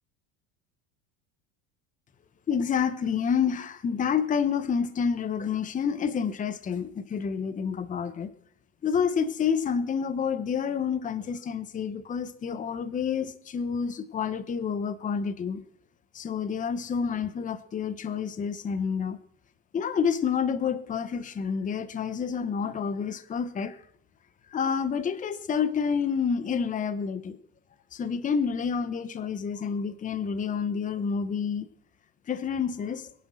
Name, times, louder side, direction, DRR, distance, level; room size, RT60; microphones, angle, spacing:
voice 1, 2.5-8.3 8.8-15.6 16.1-19.2 19.7-23.8 24.5-27.4 27.9-31.7 32.3-33.1, left 6 dB, 20° left, 13 dB, 1.0 m, -29 dB
22.0 x 10.0 x 6.3 m, 0.63 s
supercardioid pair, 135°, 35 cm